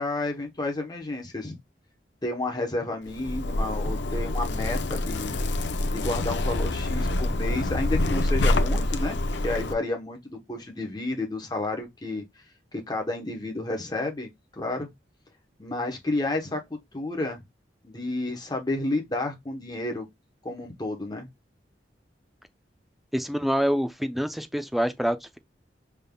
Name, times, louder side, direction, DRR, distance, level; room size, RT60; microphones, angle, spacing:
voice 1, 0.0-1.6 2.2-5.4 5.9-12.2 12.7-14.9 15.6-16.6 16.9-17.4 17.8-20.1 20.4-21.3, left 2 dB, 25° left, 1.0 m, -31 dB
Zipper (clothing), 3.1-9.7, left 1 dB, 80° left, 0.6 m, -26 dB
voice 2, 23.1-25.4, equal, ahead, 0.4 m, -26 dB
5.4 x 3.5 x 2.2 m
head